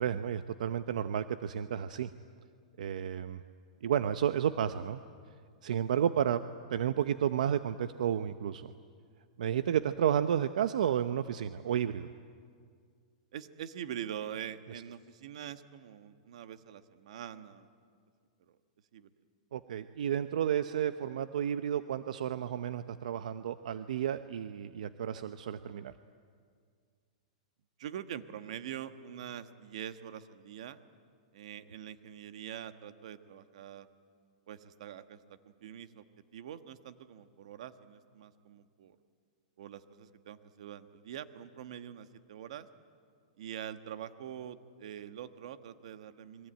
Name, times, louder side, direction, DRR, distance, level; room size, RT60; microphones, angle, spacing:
voice 1, 0.0-2.1 2.8-3.4 3.8-5.0 5.6-6.4 6.7-8.7 9.4-12.1 19.5-25.9, right 9 dB, 75° right, 11 dB, 0.8 m, -31 dB
voice 2, 13.3-17.7 18.5-18.6 18.9-19.1 27.8-30.8 31.3-33.9 34.5-35.2 35.4-36.0 36.3-39.0 39.6-42.7 43.4-46.5, right 10 dB, 60° right, 11 dB, 1.4 m, -44 dB
28.5 x 22.0 x 9.1 m, 2.1 s
supercardioid pair, 170°, 4 cm